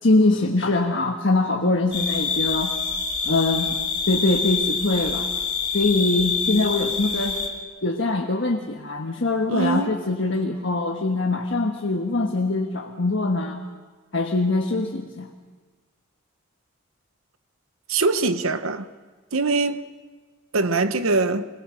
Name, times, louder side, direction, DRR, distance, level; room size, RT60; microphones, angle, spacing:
voice 1, 0.0-2.8 3.2-3.8 4.1-5.3 5.7-7.4 7.8-13.6 14.1-15.3, left 2 dB, 60° left, 1.4 m, -23 dB
sound 1, 1.9-7.5, left 5 dB, 25° left, 3.1 m, -26 dB
voice 2, 9.5-9.9 17.9-18.9 19.3-19.8 20.5-21.5, right 3 dB, 85° right, 1.0 m, -22 dB
26.0 x 21.5 x 6.4 m
head